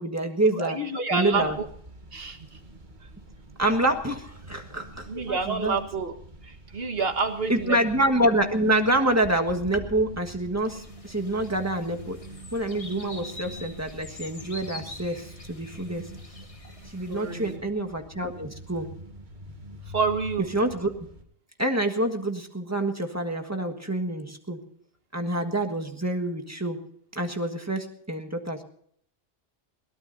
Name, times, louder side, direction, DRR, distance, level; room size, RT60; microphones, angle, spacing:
voice 1, 0.0-0.8 1.1-1.6 3.6-5.8 7.5-12.2 12.5-16.1 16.9-18.9 20.5-20.9 21.6-24.6 25.1-26.8 27.1-28.6, right 1 dB, 15° right, 4 dB, 1.6 m, -27 dB
voice 2, 0.6-1.7 2.1-2.6 5.1-6.1 6.4-7.8 17.1-17.6 19.9-20.5, right 4 dB, 65° right, 6 dB, 1.7 m, -28 dB
sound 1, 1.4-21.2, right 1 dB, 45° right, 1.8 m, -46 dB
sound 2, 10.7-17.6, left 2 dB, 30° left, 1.5 m, -46 dB
22.0 x 18.0 x 2.7 m, 0.64 s
omnidirectional pair, 1.1 m